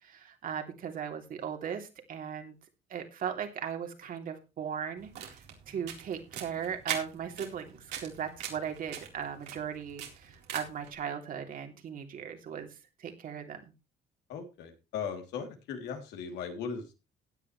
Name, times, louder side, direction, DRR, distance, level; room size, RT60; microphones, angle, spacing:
voice 1, 0.0-2.5 2.9-13.6, right 8 dB, 55° right, 4 dB, 3.1 m, -38 dB
sound 1, 5.0-10.9, right 9 dB, 80° right, 4.1 m, -41 dB
voice 2, 14.3-16.9, left 6 dB, 85° left, 4 dB, 3.1 m, -38 dB
16.0 x 9.7 x 3.3 m, 0.28 s
cardioid pair, 110°, 17 cm